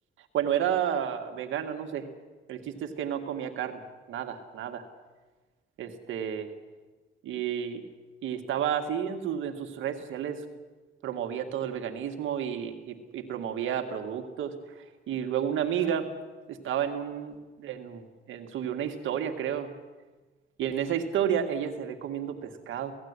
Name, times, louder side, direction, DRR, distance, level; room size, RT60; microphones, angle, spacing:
voice 1, 0.3-2.0 2.5-3.8 4.1-4.8 5.8-6.5 7.2-7.8 8.2-10.4 11.0-14.5 15.1-16.1 16.5-18.0 18.3-19.7 20.6-22.9, right 9 dB, 80° right, 5 dB, 2.1 m, -31 dB
17.5 x 15.5 x 9.8 m, 1.3 s
cardioid pair, 90°, 20 cm